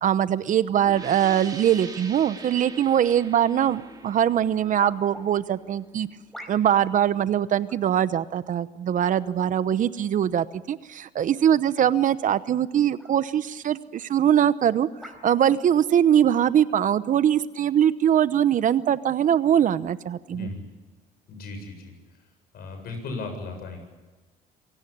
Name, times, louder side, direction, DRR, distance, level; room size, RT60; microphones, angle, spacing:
voice 1, 0.0-6.1 6.5-14.9 15.2-20.5, right 10 dB, 50° right, 15 dB, 0.9 m, -22 dB
sound 1, 0.8-6.3, right 3 dB, 25° right, 3.5 m, -43 dB
sound 2, 4.8-5.3 6.3-6.8 7.7-7.9 8.9-9.3 10.1-10.3 12.2-12.4 13.0-13.1 14.0-14.1 15.0-15.3 16.1-16.2, equal, ahead, 4.6 m, -45 dB
voice 2, 20.3-20.7 21.3-21.9 22.5-23.8, left 3 dB, 65° left, 6 dB, 7.7 m, -36 dB
26.5 x 17.5 x 8.7 m, 1.2 s
cardioid pair, 110°, 17 cm